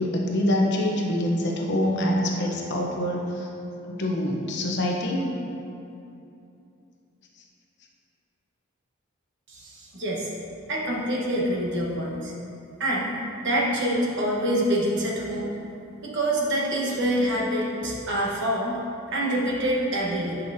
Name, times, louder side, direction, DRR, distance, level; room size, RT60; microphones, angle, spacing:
voice 1, 0.0-3.5 4.0-5.3, left 1 dB, 55° left, -1 dB, 0.8 m, -25 dB
voice 2, 9.5-10.3 10.7-12.3 12.8-13.1 13.4-15.5 16.0-18.8 19.1-20.4, right 1 dB, 60° right, -3 dB, 1.1 m, -26 dB
8.1 x 5.4 x 2.7 m, 2.8 s
head